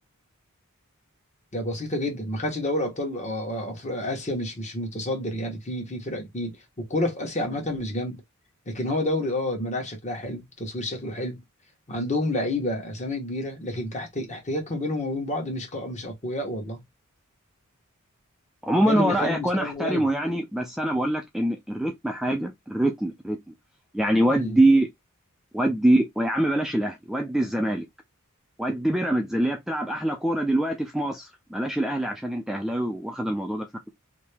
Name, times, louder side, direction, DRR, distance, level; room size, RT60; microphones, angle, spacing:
voice 1, 1.5-8.2 8.7-11.4 11.9-16.8 18.8-20.0 24.3-24.6, left 1 dB, 35° left, 1.3 m, -29 dB
voice 2, 18.6-23.4 23.9-24.9 25.5-27.9 28.6-33.9, right 1 dB, ahead, 0.4 m, -24 dB
2.9 x 2.8 x 3.3 m
head